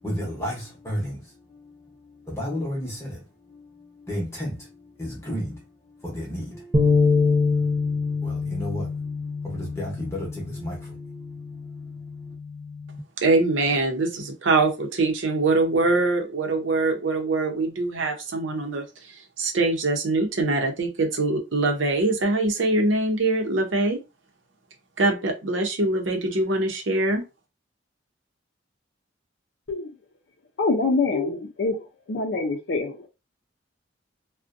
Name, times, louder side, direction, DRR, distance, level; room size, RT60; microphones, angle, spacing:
voice 1, 0.0-3.2 3.5-5.6 6.0-7.7 8.1-9.1 9.4-11.6, equal, 15° left, 0.8 m, -34 dB
sound 1, 6.7-13.0, left 4 dB, 25° right, 0.5 m, -25 dB
voice 2, 13.2-24.0 25.0-27.2, right 2 dB, 85° right, 0.7 m, -23 dB
voice 3, 30.6-33.1, left 3 dB, 60° left, 0.5 m, -25 dB
2.5 x 2.1 x 2.5 m
head